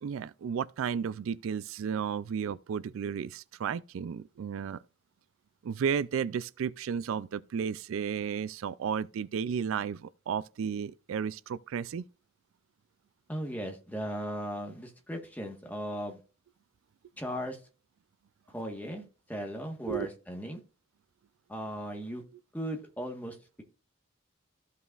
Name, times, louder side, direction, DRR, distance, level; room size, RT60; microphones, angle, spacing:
voice 1, 0.0-4.8 5.6-12.1 19.9-20.1, right 7 dB, 80° right, 0.3 m, -33 dB
voice 2, 13.3-16.2 17.2-17.6 18.5-20.6 21.5-22.2 22.5-23.6, equal, 10° left, 1.4 m, -37 dB
14.5 x 5.5 x 2.4 m
head